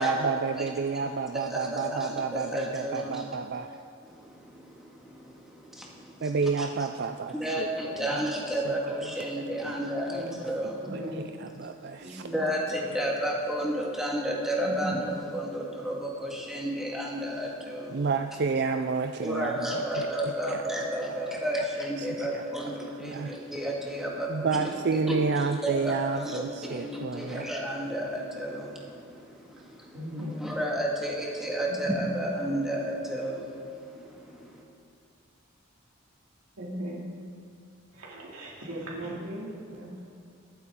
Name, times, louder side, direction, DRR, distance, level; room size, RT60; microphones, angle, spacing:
voice 1, 0.0-3.7 6.2-8.3 8.6-8.7 9.0-9.1 9.6-9.9 10.9-12.2 17.9-20.1 20.5-20.9 22.0-22.7 23.0-23.3 24.3-27.5, right 4 dB, 50° right, 7 dB, 0.4 m, -30 dB
voice 2, 1.3-3.3 4.0-6.3 6.6-6.7 7.3-10.9 12.0-18.0 19.2-24.8 25.1-25.2 25.6-34.6, equal, ahead, -3 dB, 1.8 m, -32 dB
voice 3, 10.0-10.4 10.8-11.2 12.0-12.5 14.6-14.8 29.9-30.4 31.6-31.8 36.6-37.1 37.9-40.1, right 1 dB, 85° right, -5 dB, 2.5 m, -38 dB
23.0 x 8.2 x 3.7 m, 2.5 s
head